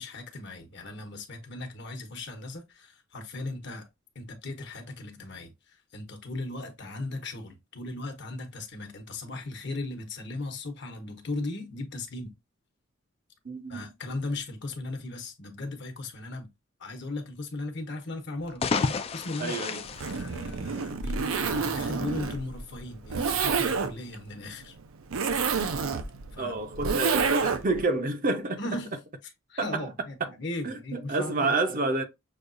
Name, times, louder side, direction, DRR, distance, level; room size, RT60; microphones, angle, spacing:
voice 1, 0.0-3.9 4.1-12.3 13.7-16.5 16.8-18.7 19.1-24.8 26.3-26.6 28.6-28.9 29.5-31.8, left 2 dB, 55° left, 1.0 m, -37 dB
voice 2, 13.4-13.9 19.4-19.8 26.4-28.6 29.6-29.9 30.2-30.3 30.6-32.0, right 3 dB, 40° right, 0.6 m, -29 dB
sound 1, 18.4-21.0, left 4 dB, 30° left, 0.3 m, -31 dB
Zipper (clothing), 19.9-27.8, right 5 dB, 85° right, 0.6 m, -29 dB
6.5 x 2.3 x 2.5 m
head